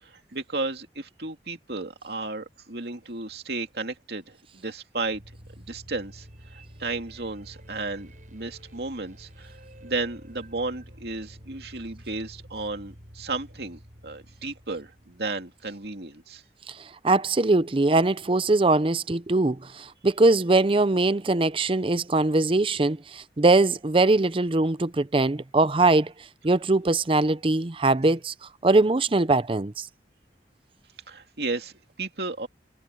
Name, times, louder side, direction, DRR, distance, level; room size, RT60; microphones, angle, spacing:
voice 1, 0.0-5.2 5.6-9.5 9.8-16.4 31.1-32.5, right 3 dB, 65° right, 2.6 m, -34 dB
sound 1, 5.0-15.9, equal, 45° right, 7.2 m, -49 dB
voice 2, 17.0-26.1 26.4-28.3 28.6-29.9, right 2 dB, 30° right, 0.6 m, -22 dB
head